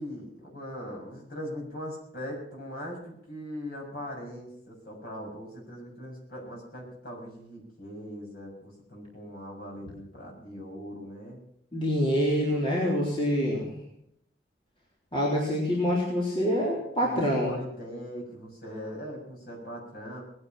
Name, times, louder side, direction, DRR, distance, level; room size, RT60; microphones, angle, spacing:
voice 1, 0.0-11.4 17.0-20.2, equal, 55° left, 0 dB, 6.7 m, -40 dB
voice 2, 11.7-13.7 15.1-17.5, equal, 30° left, -5 dB, 3.8 m, -26 dB
20.0 x 9.9 x 6.1 m, 0.72 s
head